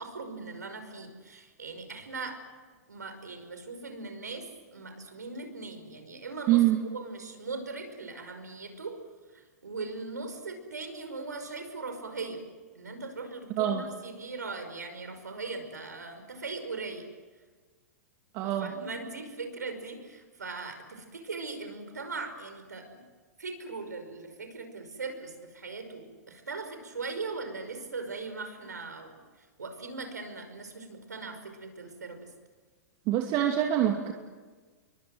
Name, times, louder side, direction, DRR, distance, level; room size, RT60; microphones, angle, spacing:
voice 1, 0.0-2.4 2.9-9.0 9.6-12.4 12.8-17.1 18.4-23.0 23.4-29.1 29.6-32.2, right 3 dB, 85° right, 7 dB, 5.5 m, -39 dB
voice 2, 6.5-6.8 13.5-13.8 18.3-18.7 33.1-34.1, right 12 dB, 40° right, 3 dB, 2.5 m, -25 dB
28.5 x 23.5 x 7.9 m, 1.4 s
hypercardioid pair, 110°, 9 cm